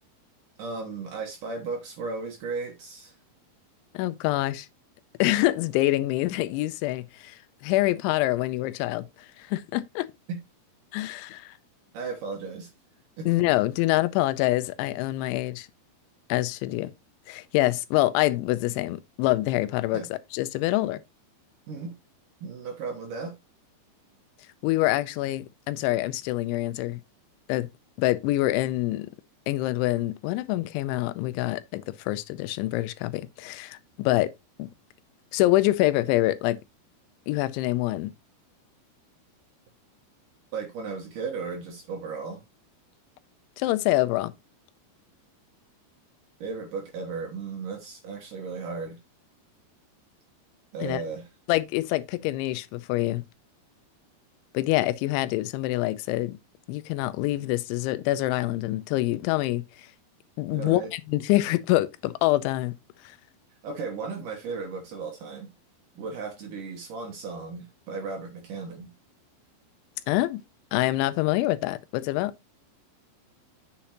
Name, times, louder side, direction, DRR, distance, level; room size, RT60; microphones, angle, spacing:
voice 1, 0.6-3.2 11.9-12.7 13.2-13.3 19.9-20.1 21.7-21.9 22.4-23.3 40.5-42.4 46.4-49.0 50.7-51.3 60.5-60.9 63.6-65.5 66.0-68.9, right 4 dB, 75° right, 1.9 m, -35 dB
voice 2, 3.9-4.7 5.2-9.0 9.4-10.1 10.9-11.5 13.3-15.7 16.3-16.9 17.3-21.0 24.6-27.0 27.5-27.7 28.0-29.1 29.5-34.3 34.6-34.7 35.3-36.6 37.3-38.1 43.6-44.3 50.8-51.0 51.5-53.2 54.5-56.4 56.7-59.6 60.4-62.7 70.1-70.4 70.7-72.3, left 17 dB, 85° left, 3.0 m, -26 dB
8.6 x 6.7 x 2.9 m
omnidirectional pair, 5.3 m